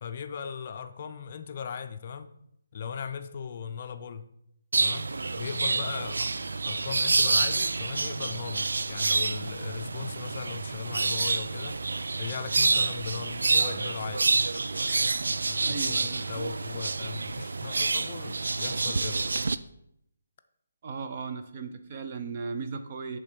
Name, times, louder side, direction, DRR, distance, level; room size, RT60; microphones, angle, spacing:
voice 1, 0.0-2.3 2.7-4.3 4.8-6.3 6.6-11.8 12.2-14.3 15.5-19.3, left 7 dB, 40° left, 8 dB, 0.4 m, -38 dB
sound 1, 4.7-19.6, right 3 dB, 80° right, 0.3 m, -28 dB
voice 2, 15.6-16.2 20.8-23.2, right 5 dB, 35° right, 7 dB, 0.6 m, -36 dB
8.3 x 3.6 x 5.2 m, 0.76 s
hypercardioid pair, 160°, 0 cm